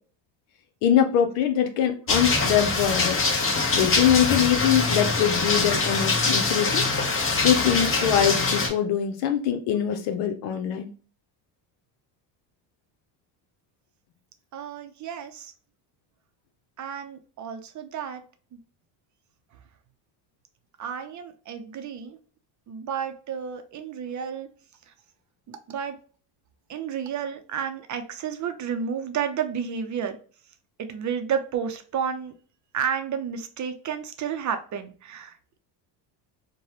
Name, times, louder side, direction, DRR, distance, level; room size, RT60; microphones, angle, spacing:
voice 1, 0.8-3.2 3.7-6.8 7.4-10.9, left 9 dB, 80° left, 6 dB, 0.8 m, -23 dB
sound 1, 2.1-8.7, left 3 dB, 30° left, 0.9 m, -23 dB
voice 2, 14.5-15.5 16.8-18.2 20.8-22.2 22.7-24.5 24.9-25.0 25.5-26.0 26.7-30.2 30.8-32.3 32.7-35.6, right 7 dB, 40° right, 8 dB, 0.6 m, -31 dB
3.2 x 2.3 x 2.7 m, 0.40 s
supercardioid pair, 85°, 47 cm